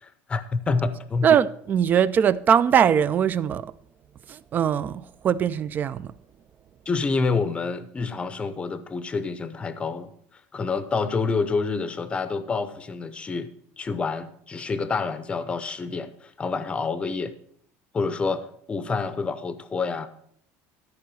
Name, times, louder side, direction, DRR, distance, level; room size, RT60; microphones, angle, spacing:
voice 1, 0.0-1.4 6.9-10.1 10.5-13.5 13.8-17.3 17.9-20.1, left 4 dB, 15° left, 0.7 m, -28 dB
voice 2, 1.2-3.7 4.3-6.1, right 8 dB, 30° right, 0.4 m, -21 dB
13.0 x 4.6 x 6.2 m
cardioid pair, 160°, 7 cm